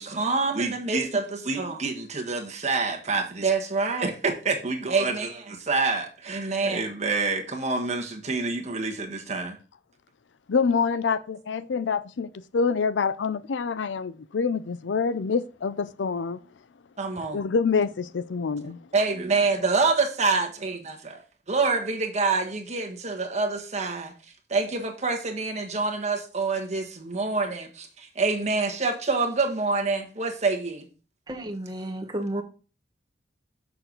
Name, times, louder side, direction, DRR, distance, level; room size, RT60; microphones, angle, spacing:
voice 1, 0.0-9.6 17.0-17.4 18.9-21.2 21.5-24.1 24.5-30.9, right 3 dB, 40° right, 1.5 m, -26 dB
voice 2, 10.5-16.4 17.3-18.8, left 5 dB, 85° left, 0.5 m, -26 dB
voice 3, 31.3-32.4, right 1 dB, 25° right, 1.2 m, -32 dB
6.7 x 6.1 x 4.0 m
head